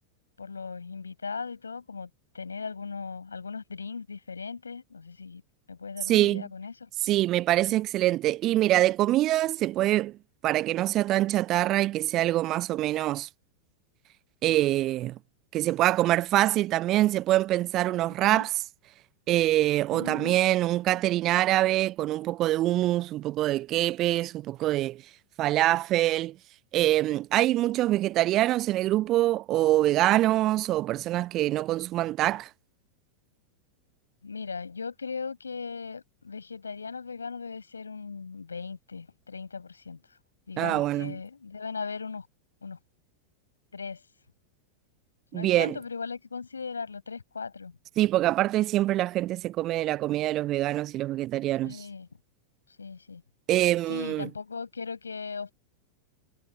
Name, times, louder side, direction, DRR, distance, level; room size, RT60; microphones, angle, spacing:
voice 1, 0.4-2.1 2.3-5.4 5.7-6.9 18.2-18.5 19.9-20.4 34.2-40.0 40.5-42.3 42.6-42.8 43.7-44.0 45.3-47.8 51.6-52.1 52.8-53.2 53.9-55.5, left 5 dB, 75° left, 6.0 m, -38 dB
voice 2, 6.1-6.4 7.0-10.1 10.4-13.3 14.4-15.2 15.5-18.5 19.3-25.0 25.4-26.3 26.7-32.5 40.6-41.1 45.3-45.7 48.0-51.8 53.5-54.3, right 15 dB, 35° right, 0.7 m, -25 dB
figure-of-eight pair, 90°, 0 cm